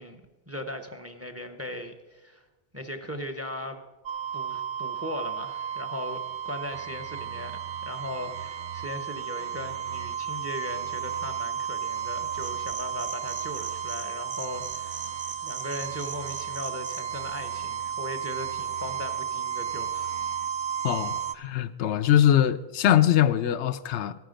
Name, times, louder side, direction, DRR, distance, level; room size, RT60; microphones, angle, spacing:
voice 1, 0.0-2.4 2.7-3.8 4.3-15.1 15.4-20.3, left 1 dB, 15° right, 7 dB, 0.8 m, -38 dB
sound 1, 4.1-21.4, right 8 dB, 80° right, 0.9 m, -33 dB
sound 2, 12.4-14.0 14.3-17.0, right 4 dB, 35° right, 1.5 m, -39 dB
voice 2, 20.8-24.1, left 11 dB, 90° left, 11 dB, 0.9 m, -22 dB
14.0 x 9.4 x 5.2 m, 1.2 s
omnidirectional pair, 1.1 m